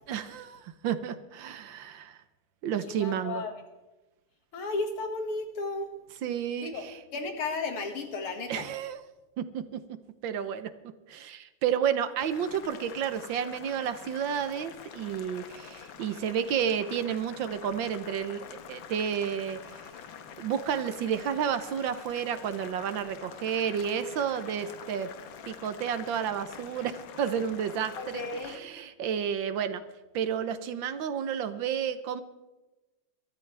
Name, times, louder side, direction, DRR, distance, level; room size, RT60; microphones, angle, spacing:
voice 1, 0.1-2.2 2.6-3.4 6.2-6.9 8.5-9.0 9.4-9.8 10.2-10.7 11.1-19.6 20.4-25.1 25.4-29.8 30.1-32.2, right 8 dB, 70° right, 11 dB, 1.4 m, -31 dB
voice 2, 2.9-3.6 4.5-5.9 6.6-6.8 7.1-8.7 28.0-28.6, left 3 dB, 85° left, 4 dB, 2.8 m, -34 dB
Boiling, 12.2-28.6, left 8 dB, 65° left, 1.7 m, -46 dB
22.5 x 13.5 x 3.4 m, 1.1 s
omnidirectional pair, 2.4 m